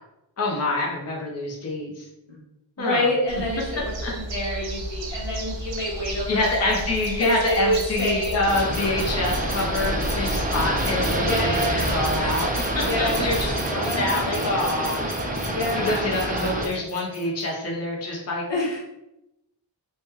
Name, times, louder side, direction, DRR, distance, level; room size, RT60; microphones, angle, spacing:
voice 1, 0.4-2.1 2.8-3.1 4.0-4.1 6.3-15.1 15.7-18.4, left 2 dB, 35° left, -1 dB, 0.6 m, -26 dB
voice 2, 2.8-6.5 7.2-8.4 11.1-12.1 12.9-13.4 13.8-14.6 15.5-16.0 18.5-18.8, left 1 dB, 70° left, -3 dB, 1.0 m, -27 dB
sound 1, 3.3-13.6, equal, 80° right, 0.6 m, -33 dB
sound 2, 6.4-17.5, equal, 5° left, 1.1 m, -36 dB
sound 3, 8.4-16.7, right 1 dB, 20° right, 0.4 m, -27 dB
3.1 x 2.2 x 2.9 m, 0.88 s
wide cardioid pair, 70°, 44 cm